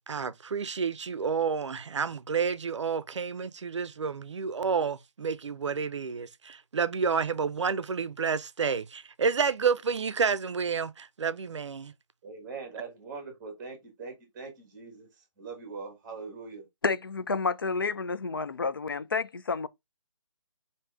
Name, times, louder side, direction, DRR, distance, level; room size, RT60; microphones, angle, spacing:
voice 1, 0.1-11.9, right 6 dB, 60° right, 0.5 m, -30 dB
voice 2, 12.2-16.7, right 4 dB, 10° right, 0.9 m, -42 dB
voice 3, 16.8-19.7, left 4 dB, 40° left, 0.5 m, -30 dB
5.1 x 2.7 x 3.4 m
hypercardioid pair, 175°, 17 cm